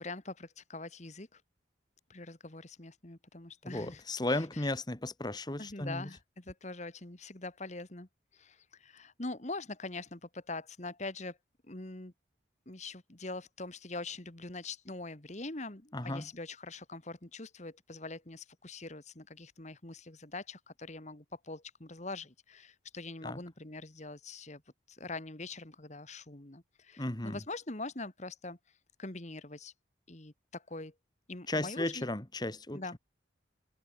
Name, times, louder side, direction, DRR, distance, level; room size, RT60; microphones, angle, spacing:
voice 1, 0.0-1.4 2.1-4.0 5.6-8.1 8.3-11.4 11.7-12.1 12.6-24.6 24.9-28.6 29.0-29.7 30.1-30.9 31.3-32.1 32.7-33.0, left 2 dB, 35° left, 1.8 m, -43 dB
voice 2, 3.6-6.1 15.9-16.3 23.2-23.4 27.0-27.4 31.5-32.8, left 1 dB, 20° left, 1.5 m, -35 dB
open air
head